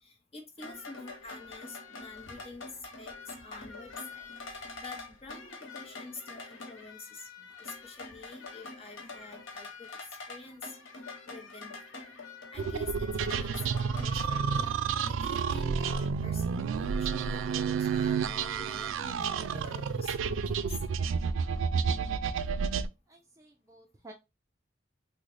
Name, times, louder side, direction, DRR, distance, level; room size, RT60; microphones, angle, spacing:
voice 1, 0.0-2.7 3.0-9.9 10.3-10.8 11.3-12.1 12.5-14.7 15.0-16.6 16.9-20.7, left 3 dB, 30° left, 0.8 m, -48 dB
sound 1, 0.6-14.2, left 3 dB, 80° left, 0.8 m, -45 dB
sound 2, 12.6-22.9, right 6 dB, 85° right, 0.3 m, -30 dB
voice 2, 23.1-24.1, right 1 dB, 15° right, 0.4 m, -53 dB
3.8 x 2.1 x 3.2 m
head